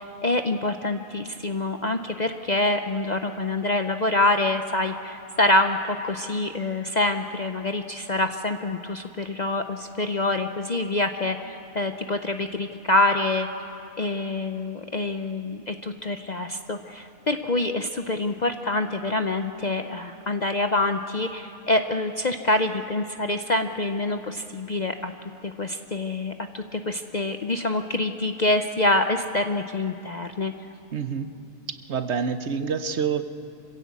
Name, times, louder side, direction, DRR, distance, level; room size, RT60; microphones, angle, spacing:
voice 1, 0.0-13.5 14.0-25.1 25.4-30.5, left 2 dB, 45° left, 7 dB, 0.6 m, -26 dB
voice 2, 30.9-31.3 31.9-33.2, right 6 dB, 60° right, 10 dB, 1.0 m, -27 dB
26.0 x 16.0 x 8.3 m, 2.6 s
omnidirectional pair, 1.4 m